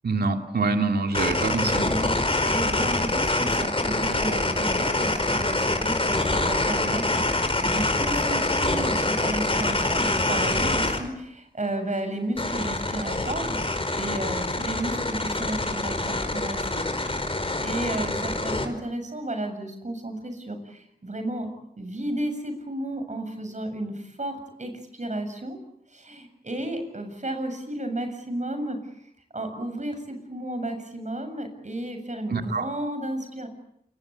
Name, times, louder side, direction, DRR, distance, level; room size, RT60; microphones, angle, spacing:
voice 1, 0.0-1.8 32.3-32.7, right 3 dB, 85° right, 5 dB, 2.4 m, -25 dB
sound 1, 1.1-11.0 12.4-18.7, left 2 dB, 35° left, 5.1 m, -25 dB
voice 2, 1.8-16.8 17.3-21.5 21.8-25.6 25.9-28.8 29.3-33.5, right 1 dB, 50° right, 7 dB, 7.4 m, -33 dB
28.0 x 23.5 x 8.5 m, 0.73 s
wide cardioid pair, 55°, 16 cm